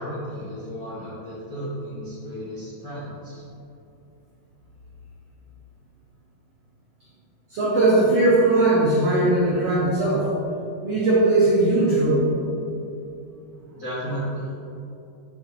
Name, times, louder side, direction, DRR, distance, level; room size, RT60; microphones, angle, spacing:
voice 1, 0.0-3.4 13.7-14.5, equal, 70° left, -12 dB, 0.8 m, -33 dB
voice 2, 7.5-10.3 10.8-12.3, right 2 dB, 85° right, -7 dB, 1.4 m, -19 dB
6.9 x 5.7 x 2.8 m, 2.7 s
omnidirectional pair, 4.4 m